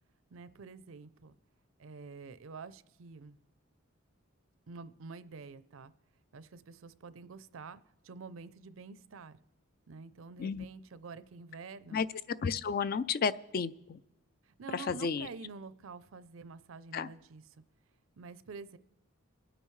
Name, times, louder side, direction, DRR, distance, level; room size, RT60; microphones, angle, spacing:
voice 1, 0.3-1.3 1.8-3.4 4.7-5.9 6.3-7.8 8.0-9.4 9.9-12.0 14.5-17.4 18.2-18.8, right 4 dB, 70° right, 15 dB, 0.5 m, -48 dB
voice 2, 12.4-14.0 14.7-15.3 16.9-17.1, left 5 dB, 45° left, 16 dB, 0.3 m, -32 dB
24.5 x 8.9 x 3.2 m, 0.89 s
head